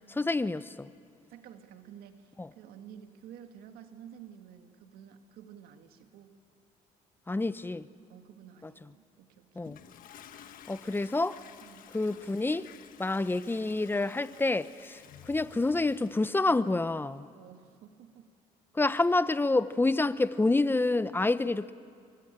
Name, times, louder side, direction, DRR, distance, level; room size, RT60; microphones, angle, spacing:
voice 1, 0.1-0.9 2.4-2.5 7.3-7.9 9.6-9.8 10.7-11.4 11.9-12.7 13.0-17.3 18.7-21.7, left 2 dB, 15° left, 0.9 m, -28 dB
voice 2, 1.3-6.4 8.1-10.0 11.6-11.9 17.3-18.3, right 9 dB, 80° right, 2.0 m, -51 dB
Toilet flush, 9.6-16.4, left 9 dB, 65° left, 1.4 m, -53 dB
27.0 x 23.5 x 9.0 m
cardioid pair, 85°, 16 cm